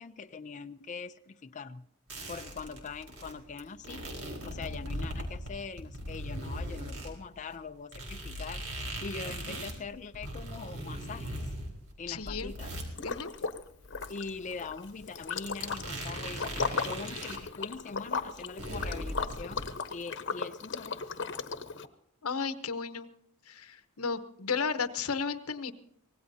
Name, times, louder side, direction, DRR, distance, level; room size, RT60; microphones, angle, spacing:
voice 1, 0.0-1.9 2.3-4.1 4.4-11.4 12.0-12.7 14.1-19.7 19.9-21.0, left 4 dB, 35° left, 7 dB, 0.5 m, -42 dB
sound 1, 2.1-7.1 7.5-7.6 7.9-17.4 17.7-17.8 18.1-19.9, right 1 dB, 80° right, 4.3 m, -39 dB
voice 2, 12.1-12.5 13.0-13.3 22.2-23.1 23.5-25.7, left 5 dB, 85° left, 10 dB, 1.0 m, -34 dB
Liquid, 13.0-13.6 13.9-21.9, left 5 dB, 60° left, 1.0 m, -36 dB
24.5 x 18.5 x 2.8 m, 0.74 s
head